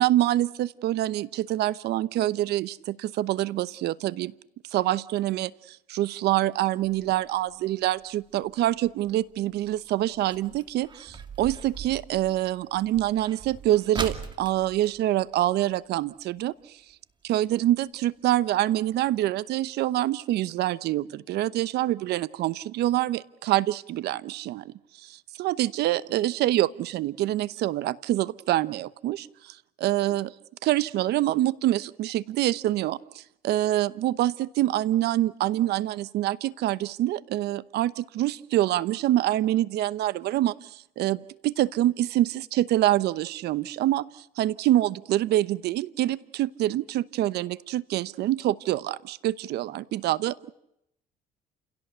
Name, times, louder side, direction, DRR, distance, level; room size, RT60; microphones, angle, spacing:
voice 1, 0.0-4.3 4.7-16.8 17.2-30.3 30.6-50.5, right 14 dB, 75° right, 18 dB, 0.9 m, -26 dB
sound 1, 6.8-16.1 16.4-16.5 16.8-17.1 17.6-17.7 18.3-18.4 18.6-18.7 19.1-19.2, right 5 dB, 25° right, 2.5 m, -41 dB
29.5 x 17.0 x 8.2 m, 0.80 s
cardioid pair, 110°, 17 cm